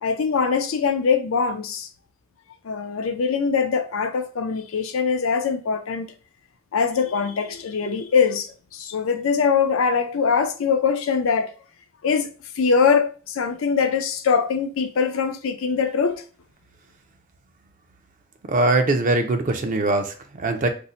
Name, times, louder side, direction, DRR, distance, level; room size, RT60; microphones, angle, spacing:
voice 1, 0.0-1.9 2.6-6.1 6.7-11.5 12.0-12.3 12.6-16.2, left 5 dB, 85° left, 0.4 m, -22 dB
voice 2, 18.5-20.7, right 2 dB, 40° right, 0.4 m, -21 dB
2.6 x 2.1 x 3.9 m
head